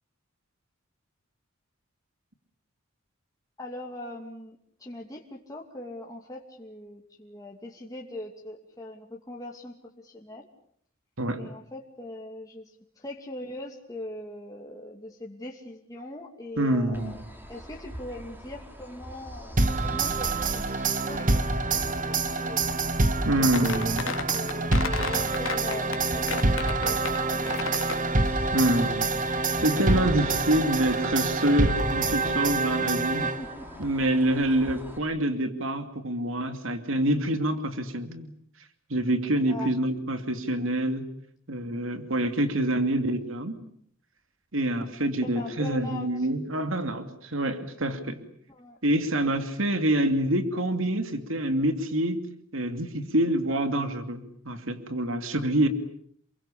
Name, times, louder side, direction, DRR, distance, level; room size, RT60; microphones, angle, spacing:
voice 1, 3.6-10.5 11.4-17.2 17.5-22.6 23.4-28.0 33.4-33.7 39.5-39.7 45.3-46.3 48.5-48.8, left 1 dB, 15° left, -1 dB, 2.7 m, -41 dB
voice 2, 16.6-17.2 23.3-24.0 28.5-33.2 33.8-38.3 38.9-41.1 41.5-43.5 44.5-48.2 48.8-52.2 52.5-55.7, right 1 dB, 70° right, 8 dB, 2.6 m, -26 dB
sound 1, 16.9-35.0, equal, 10° right, 4.3 m, -43 dB
sound 2, 19.6-33.7, right 3 dB, 40° right, 1.6 m, -26 dB
sound 3, 23.5-25.9 26.3-28.1, left 5 dB, 75° left, 2.6 m, -32 dB
29.5 x 23.0 x 8.6 m, 0.66 s
head